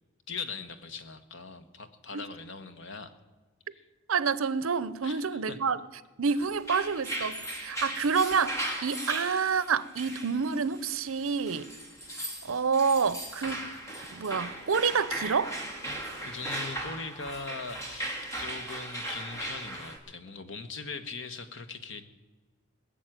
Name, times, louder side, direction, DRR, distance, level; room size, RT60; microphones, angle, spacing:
voice 1, 0.3-3.1 3.7-3.8 5.0-5.6 6.3-6.4 16.2-22.0, left 4 dB, 60° left, 1.2 m, -40 dB
voice 2, 4.1-5.8 6.2-11.7 12.4-13.7 14.1-15.6, right 5 dB, 75° right, 0.7 m, -28 dB
sound 1, 6.5-20.0, right 1 dB, 15° left, 2.1 m, -37 dB
20.5 x 7.3 x 9.0 m
head